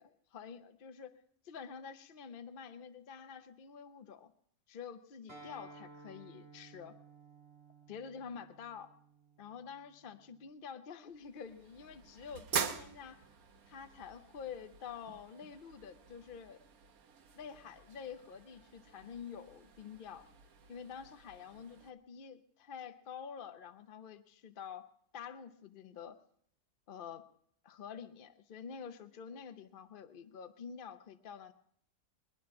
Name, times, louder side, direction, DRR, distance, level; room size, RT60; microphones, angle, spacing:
voice 1, 0.0-4.3 4.7-7.0 7.9-8.9 9.4-13.2 13.7-16.6 17.4-20.3 20.7-24.8 25.1-26.2 26.9-27.2 27.6-31.5, left 7 dB, 55° left, 9 dB, 0.6 m, -48 dB
Acoustic guitar, 5.3-10.5, right 3 dB, 35° right, 6.6 m, -57 dB
sound 1, 11.1-21.9, right 6 dB, 65° right, 1.4 m, -45 dB
21.5 x 10.5 x 4.7 m, 0.67 s
omnidirectional pair, 1.6 m